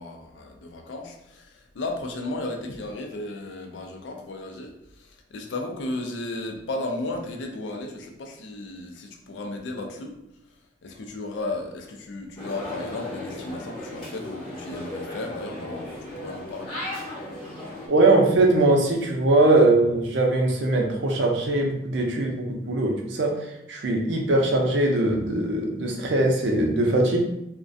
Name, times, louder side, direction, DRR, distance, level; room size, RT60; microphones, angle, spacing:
voice 1, 0.0-4.7 5.0-10.2 10.8-16.8, left 2 dB, 90° left, 3 dB, 0.4 m, -34 dB
sound 1, 12.4-17.9, left 1 dB, 30° left, 0.8 m, -36 dB
voice 2, 17.9-23.3 23.7-27.2, right 2 dB, 75° right, 1 dB, 0.5 m, -21 dB
2.4 x 2.1 x 2.5 m, 0.83 s
head